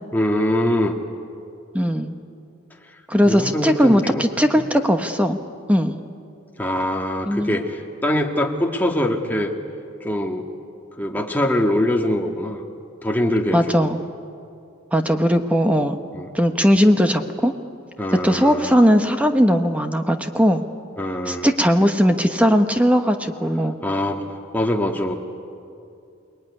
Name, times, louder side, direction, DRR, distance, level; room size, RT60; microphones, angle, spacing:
voice 1, 0.1-1.0 3.2-4.2 4.5-4.7 6.6-9.5 10.0-10.4 11.0-12.6 13.0-13.9 16.1-16.3 18.0-18.7 21.0-21.5 23.8-24.2 24.5-25.1, left 1 dB, 10° left, 1 dB, 1.8 m, -23 dB
voice 2, 1.7-2.1 3.1-5.4 5.7-6.0 7.2-7.6 13.5-14.0 14.9-16.0 16.3-17.5 18.2-20.6 21.3-23.8, equal, 5° right, 6 dB, 1.1 m, -18 dB
29.0 x 20.0 x 9.9 m, 2.5 s
head